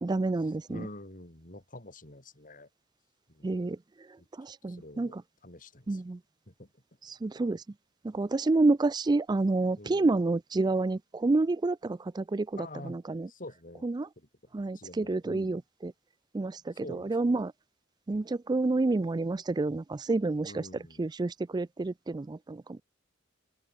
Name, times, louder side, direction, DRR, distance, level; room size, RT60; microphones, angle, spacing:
voice 1, 0.0-0.9 3.4-5.2 5.9-6.2 7.0-7.6 8.0-13.3 13.8-14.1 14.5-15.9 16.3-17.5 18.1-20.7 21.0-22.8, right 2 dB, 20° right, 0.4 m, -29 dB
voice 2, 0.7-2.7 3.3-3.5 4.2-4.3 4.7-5.2 5.4-6.0 6.5-6.7 9.8-10.1 12.6-13.0 13.3-13.9 14.2-14.3 14.6-15.6 16.8-17.4 20.4-21.0, left 1 dB, 45° left, 6.9 m, -47 dB
open air
head